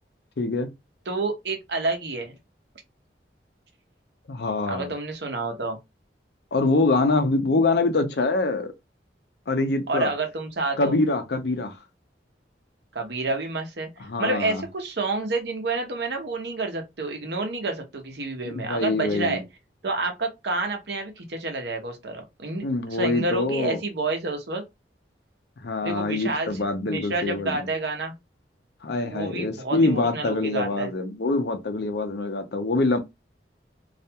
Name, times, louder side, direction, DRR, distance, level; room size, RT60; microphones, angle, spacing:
voice 1, 0.4-0.7 4.3-4.9 6.5-8.7 9.5-10.1 10.8-11.8 14.0-14.6 18.5-19.4 22.6-23.8 25.6-27.7 28.8-33.0, left 2 dB, 65° left, 0.6 m, -24 dB
voice 2, 1.1-2.3 4.7-5.8 9.9-11.0 12.9-19.4 19.8-24.6 25.8-26.5 26.8-28.1 29.0-30.9, right 3 dB, 70° right, 0.8 m, -29 dB
2.4 x 2.2 x 2.7 m
head